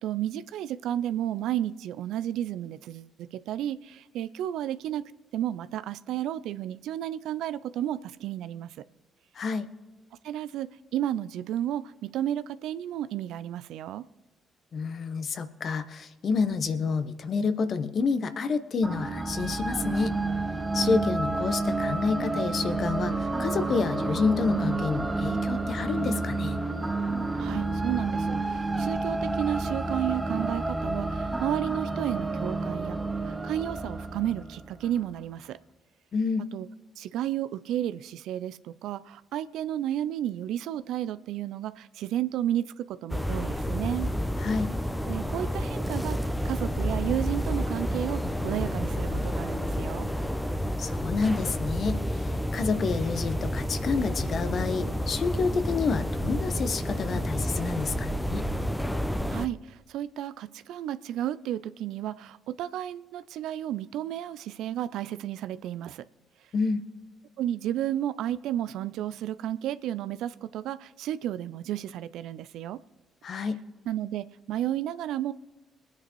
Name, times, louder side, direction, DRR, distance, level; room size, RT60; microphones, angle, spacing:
voice 1, 0.0-5.0 5.3-8.8 10.2-14.0 27.4-33.0 33.2-35.6 36.5-36.7 37.0-44.1 45.1-50.1 59.3-66.0 67.4-72.8 73.9-75.3, right 11 dB, 70° right, 15 dB, 0.4 m, -32 dB
voice 2, 9.3-9.7 14.7-20.2 20.7-26.6 36.1-36.5 44.4-44.7 50.8-52.3 52.5-58.4 66.5-66.8 73.2-73.6, left 4 dB, 55° left, 11 dB, 1.0 m, -29 dB
sound 1, 18.8-35.0, right 2 dB, 20° right, 1.1 m, -30 dB
sound 2, 43.1-59.5, equal, 5° left, 0.9 m, -30 dB
22.5 x 9.6 x 3.1 m, 1.2 s
hypercardioid pair, 45°, 0 cm